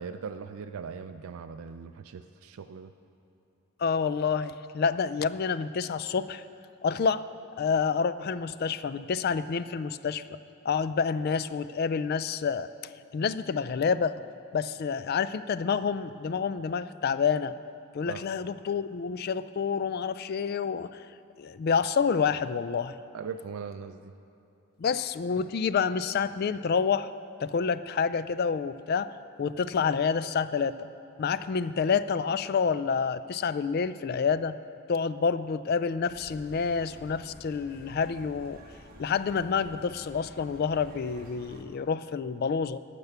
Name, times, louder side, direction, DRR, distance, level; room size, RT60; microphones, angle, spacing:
voice 1, 0.0-2.9 18.1-18.2 23.1-24.1, right 6 dB, 75° right, 7 dB, 0.4 m, -39 dB
voice 2, 3.8-6.4 6.8-7.2 7.6-10.2 10.6-12.7 13.1-14.1 14.5-17.5 17.9-21.0 21.4-23.0 24.8-27.1 27.4-29.1 29.4-30.9 31.2-34.5 34.9-38.6 39.0-42.8, left 6 dB, 45° left, 14 dB, 0.3 m, -28 dB
sound 1, 36.1-41.6, right 1 dB, 40° right, 1.2 m, -50 dB
12.5 x 6.8 x 8.1 m, 2.8 s
head